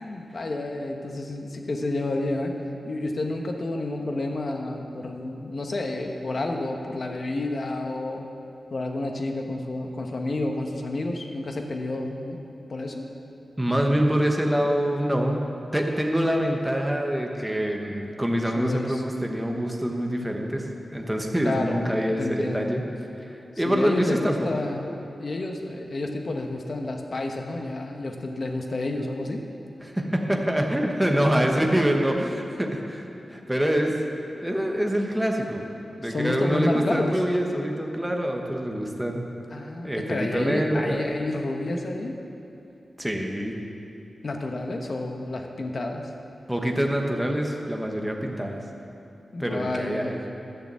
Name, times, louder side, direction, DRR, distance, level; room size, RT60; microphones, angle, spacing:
voice 1, 0.0-2.6 2.8-8.3 8.7-12.4 12.7-13.1 18.5-19.0 21.4-22.8 23.6-24.8 25.2-29.4 36.0-37.2 39.5-42.2 44.2-46.1 49.3-50.2, left 2 dB, 45° left, 3 dB, 1.1 m, -30 dB
voice 2, 13.6-15.4 15.7-22.8 23.3-24.5 29.8-34.0 34.4-35.7 36.0-39.2 39.8-41.0 41.7-41.8 43.0-43.6 46.5-48.6 49.4-50.2, equal, 5° right, 1 dB, 1.1 m, -25 dB
12.0 x 6.8 x 7.6 m, 2.8 s
wide cardioid pair, 135°, 0 cm